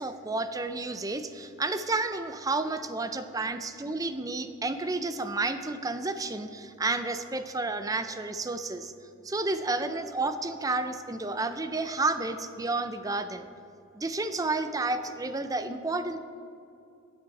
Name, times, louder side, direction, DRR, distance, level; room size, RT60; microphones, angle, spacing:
voice 1, 0.0-8.9 9.2-13.5 13.9-16.2, right 3 dB, 15° right, 10 dB, 0.5 m, -31 dB
15.5 x 8.0 x 4.1 m, 2.5 s
head